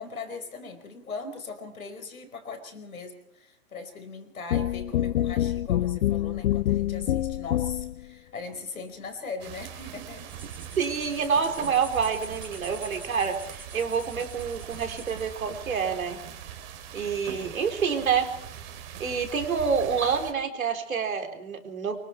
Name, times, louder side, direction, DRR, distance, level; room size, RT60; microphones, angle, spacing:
voice 1, 0.0-10.3, left 4 dB, 80° left, 7 dB, 5.0 m, -39 dB
sound 1, 4.5-8.0, left 12 dB, 60° left, 0.7 m, -26 dB
sound 2, 9.4-20.3, right 9 dB, 50° right, 3.8 m, -42 dB
sound 3, 10.2-15.4, right 2 dB, 5° right, 2.9 m, -48 dB
voice 2, 10.8-16.2 16.9-18.3 19.0-22.0, right 6 dB, 75° right, 5 dB, 4.0 m, -27 dB
25.5 x 23.5 x 4.6 m, 0.73 s
hypercardioid pair, 115°, 42 cm